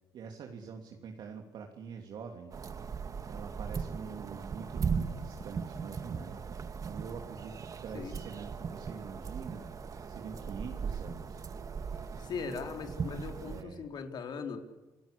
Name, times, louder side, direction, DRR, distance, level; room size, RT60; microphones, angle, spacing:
voice 1, 0.1-2.5 3.3-6.4 6.8-11.5 13.5-13.8, right 6 dB, 70° right, 2 dB, 3.1 m, -45 dB
sound 1, 2.5-13.6, right 6 dB, 45° right, 2.0 m, -38 dB
voice 2, 12.2-14.6, left 5 dB, 65° left, 4 dB, 4.4 m, -39 dB
29.0 x 18.0 x 8.6 m, 1.1 s
cardioid pair, 80°, 8 cm